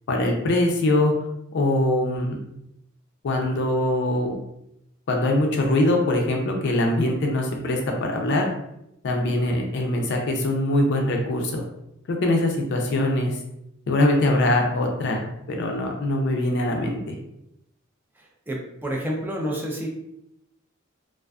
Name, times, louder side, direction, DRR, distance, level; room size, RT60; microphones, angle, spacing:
voice 1, 0.1-1.1 1.5-2.4 3.2-4.4 5.1-8.5 9.0-11.6 12.1-13.3 13.9-15.2 15.5-17.2, left 1 dB, 55° left, 2 dB, 0.4 m, -22 dB
voice 2, 18.5-19.9, equal, 10° right, -1 dB, 0.4 m, -29 dB
2.4 x 2.3 x 2.3 m, 0.81 s
head